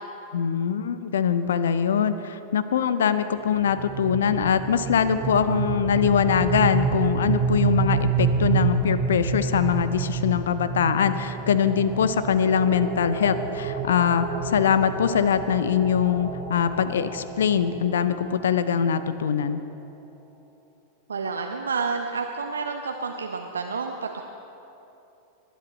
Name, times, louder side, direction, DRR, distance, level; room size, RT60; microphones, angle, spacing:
voice 1, 0.3-19.6, left 7 dB, 65° left, 12 dB, 0.6 m, -23 dB
sound 1, 3.6-18.5, right 5 dB, 25° right, 1.7 m, -28 dB
voice 2, 21.1-24.2, right 4 dB, 70° right, 4 dB, 0.6 m, -29 dB
20.0 x 10.5 x 4.3 m, 2.9 s
figure-of-eight pair, 90°, 0 cm